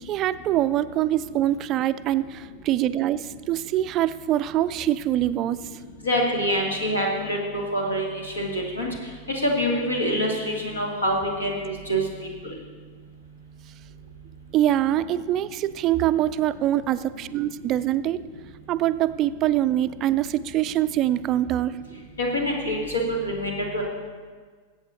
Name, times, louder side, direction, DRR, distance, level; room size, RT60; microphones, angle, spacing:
voice 1, 0.0-5.8 14.5-18.2 18.7-21.8, right 13 dB, 35° right, 14 dB, 0.3 m, -24 dB
voice 2, 6.0-8.9 9.4-12.0 22.2-23.8, equal, 75° left, -1 dB, 2.1 m, -25 dB
21.0 x 8.4 x 2.7 m, 1.5 s
figure-of-eight pair, 90°, 0 cm